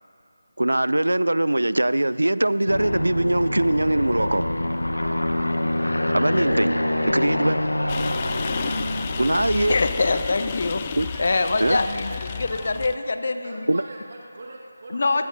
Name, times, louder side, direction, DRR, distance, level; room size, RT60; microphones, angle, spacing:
voice 1, 0.6-4.5 6.1-6.8 7.0-7.6 9.2-9.7 11.0-11.1 11.6-11.8 13.7-13.8, right 1 dB, 80° right, 16 dB, 0.4 m, -21 dB
Aircraft, 2.7-10.0, left 1 dB, 85° left, 1.0 m, -26 dB
sound 1, 7.9-13.0, left 7 dB, 25° left, 0.4 m, -32 dB
voice 2, 9.7-10.8 11.2-13.7 14.9-15.2, left 3 dB, 50° left, 9 dB, 0.9 m, -24 dB
voice 3, 11.1-12.6 13.4-15.2, right 2 dB, 45° right, -2 dB, 1.6 m, -41 dB
25.0 x 16.0 x 2.7 m, 2.6 s
figure-of-eight pair, 160°, 0 cm